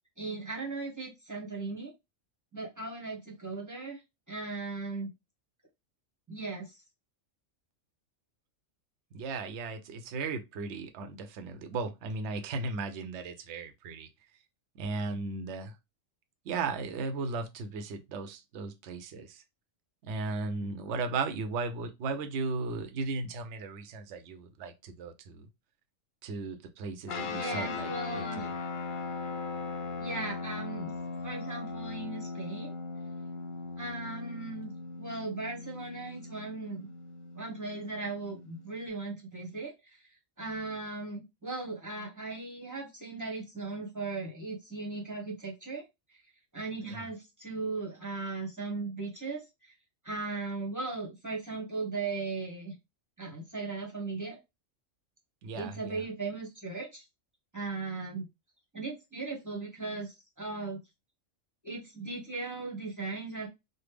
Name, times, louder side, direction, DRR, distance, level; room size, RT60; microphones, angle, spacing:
voice 1, 0.2-1.9 2.5-4.0 4.3-5.1 6.3-6.8 27.3-28.5 30.0-30.9 31.2-32.8 33.8-34.7 35.0-36.9 37.3-40.0 40.4-45.8 46.5-49.7 50.0-52.7 53.2-54.4 55.5-57.0 57.5-58.3 58.7-60.8 61.6-63.5, right 3 dB, 15° right, 0.9 m, -37 dB
voice 2, 9.1-14.1 14.8-15.7 16.5-19.4 20.0-25.5 26.2-28.5 46.9-47.1 55.4-56.0, right 3 dB, 70° right, 0.8 m, -36 dB
sound 1, 27.1-38.9, left 4 dB, 50° left, 0.6 m, -39 dB
3.3 x 2.1 x 3.2 m
omnidirectional pair, 1.3 m